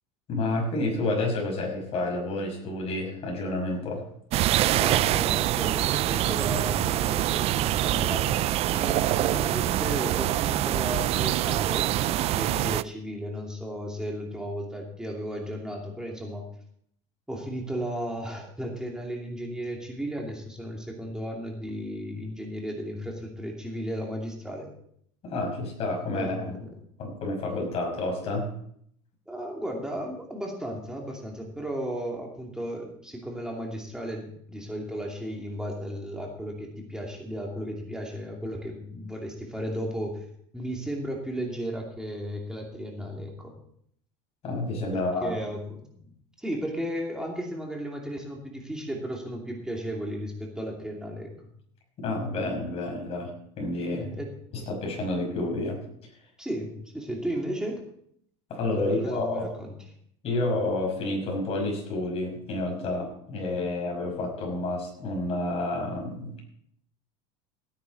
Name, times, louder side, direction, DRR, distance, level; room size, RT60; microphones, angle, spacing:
voice 1, 0.3-4.0 25.2-26.5 27.0-28.5 44.4-45.3 52.0-53.3 53.6-54.0 54.5-55.8 58.5-59.5 60.2-66.4, left 2 dB, 45° left, 1 dB, 5.8 m, -29 dB
sound 1, 4.3-12.8, right 14 dB, 45° right, 0.4 m, -25 dB
voice 2, 4.7-16.5 17.3-24.7 26.1-26.7 29.3-40.2 40.5-43.5 44.9-46.1 46.4-51.3 53.9-54.3 56.4-57.8 58.8-59.7, equal, 5° right, -1 dB, 2.7 m, -34 dB
16.5 x 9.9 x 4.1 m, 0.68 s
supercardioid pair, 115°, 15 cm